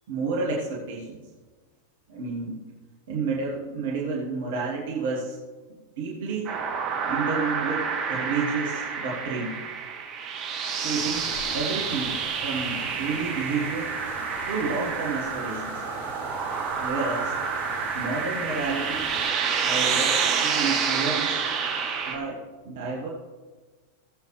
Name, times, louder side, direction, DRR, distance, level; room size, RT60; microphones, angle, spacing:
voice 1, 0.1-1.2 2.1-2.6 3.1-5.4 5.7-6.6 7.1-9.6 10.6-13.9 14.5-15.8 16.8-17.4 17.9-19.1 19.6-21.4 22.1-23.1, right 4 dB, 55° right, -3 dB, 2.1 m, -30 dB
sound 1, 6.4-22.1, right 6 dB, 35° right, 2.8 m, -28 dB
sound 2, 10.9-19.3, left 2 dB, 40° left, 3.1 m, -42 dB
19.5 x 8.0 x 3.3 m, 1.4 s
figure-of-eight pair, 90°, 0 cm